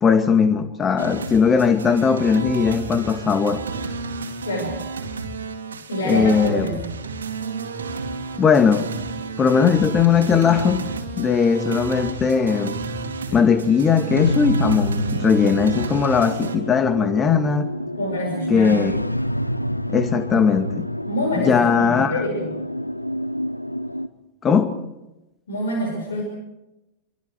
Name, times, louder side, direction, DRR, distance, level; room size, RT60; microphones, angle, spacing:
voice 1, 0.0-3.6 6.0-6.7 8.4-8.9 9.4-10.8 11.2-12.8 13.3-17.7 18.5-18.9 19.9-20.9 21.4-22.2 24.4-24.7, left 6 dB, 20° left, 2.2 m, -19 dB
sound 1, 1.0-16.6, right 4 dB, 70° right, 2.5 m, -31 dB
voice 2, 5.9-6.8 18.0-18.7 21.0-22.5 25.5-26.2, equal, 65° left, 5.7 m, -26 dB
sound 2, 14.1-24.1, equal, 90° left, 0.9 m, -28 dB
27.5 x 24.0 x 4.6 m
figure-of-eight pair, 90°, 0 cm